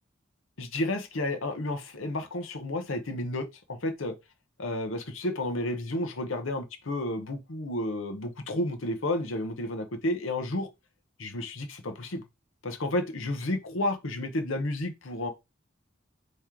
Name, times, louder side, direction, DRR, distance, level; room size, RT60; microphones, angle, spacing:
voice 1, 0.6-4.1 4.6-10.7 11.2-12.2 12.6-15.3, left 1 dB, 75° left, 0.9 m, -31 dB
3.7 x 3.2 x 4.4 m
head